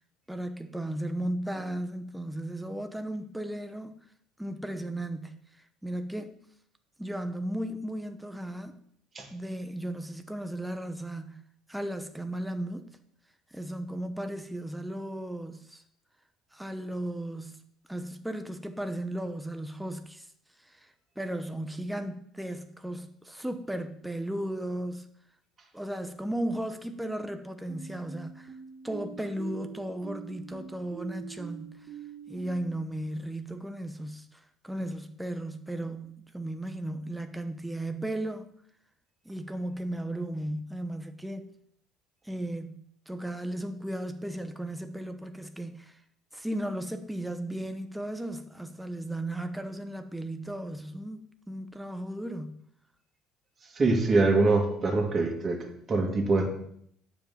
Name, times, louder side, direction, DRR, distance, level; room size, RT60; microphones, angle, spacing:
voice 1, 0.3-4.0 4.4-6.4 7.0-8.8 9.3-11.4 11.7-12.9 13.5-15.8 16.5-17.6 17.9-20.3 20.6-20.9 21.2-25.1 25.7-28.5 28.8-31.9 32.3-38.5 39.2-41.5 42.2-46.0 46.3-52.6, right 1 dB, 5° right, 0.8 m, -35 dB
sound 1, 27.7-32.8, right 8 dB, 55° right, 2.2 m, -45 dB
voice 2, 53.7-56.5, right 3 dB, 30° right, 2.3 m, -24 dB
8.8 x 5.2 x 7.3 m
supercardioid pair, 100°, 0 cm